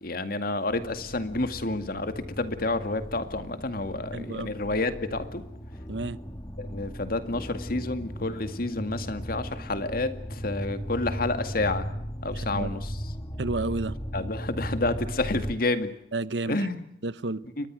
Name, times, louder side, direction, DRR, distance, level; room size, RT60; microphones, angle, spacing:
voice 1, 0.0-5.4 6.6-11.9 12.2-13.1 14.1-15.9 16.4-16.9 17.6-17.7, left 2 dB, 55° left, 9 dB, 2.1 m, -29 dB
sound 1, 0.7-15.6, equal, 25° left, 2.0 m, -37 dB
voice 2, 4.1-4.5 5.9-6.2 12.3-12.7 13.4-14.0 16.1-16.6 17.0-17.4, right 2 dB, 80° right, 16 dB, 1.0 m, -31 dB
30.0 x 23.0 x 6.3 m, 0.81 s
head